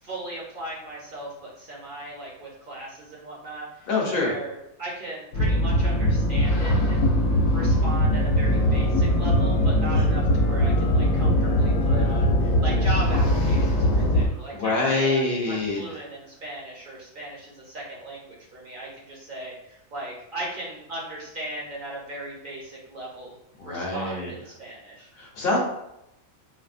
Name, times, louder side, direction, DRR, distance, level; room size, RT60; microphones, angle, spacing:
voice 1, 0.0-7.1 7.5-23.3 23.6-25.1, right 2 dB, 50° right, -4 dB, 0.7 m, -37 dB
voice 2, 3.9-4.3 9.8-10.1 14.3-15.8 23.6-24.3 25.2-25.6, left 3 dB, 50° left, -2 dB, 0.9 m, -25 dB
sound 1, 5.3-14.3, equal, 75° left, 0.9 m, -21 dB
4.1 x 2.0 x 2.5 m, 0.86 s
omnidirectional pair, 1.4 m